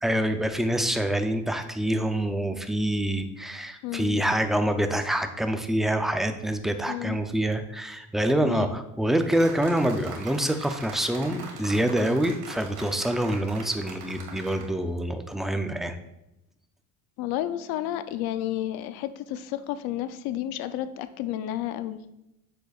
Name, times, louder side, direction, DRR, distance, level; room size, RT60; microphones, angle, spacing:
voice 1, 0.0-16.0, right 1 dB, ahead, 7 dB, 0.4 m, -26 dB
voice 2, 3.8-4.2 6.9-7.2 8.4-8.7 17.2-22.0, left 12 dB, 80° left, 12 dB, 0.6 m, -31 dB
sound 1, 9.3-14.7, right 5 dB, 85° right, 1.8 m, -42 dB
7.7 x 6.6 x 2.4 m, 0.85 s
cardioid pair, 115°, 37 cm